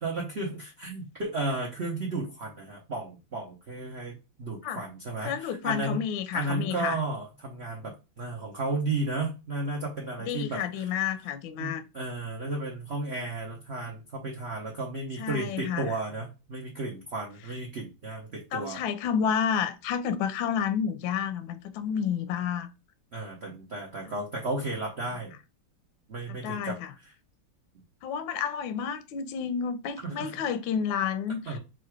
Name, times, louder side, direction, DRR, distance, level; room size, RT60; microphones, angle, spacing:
voice 1, 0.0-6.0 6.3-10.6 11.6-18.8 23.1-25.3 26.1-26.8 30.0-30.3 31.5-31.6, right 2 dB, 80° right, 0.5 m, -33 dB
voice 2, 5.2-7.0 10.2-11.8 15.2-15.9 18.5-22.7 24.1-24.2 26.3-26.9 28.0-31.6, left 7 dB, 75° left, 1.2 m, -30 dB
3.8 x 2.4 x 4.6 m
omnidirectional pair, 2.4 m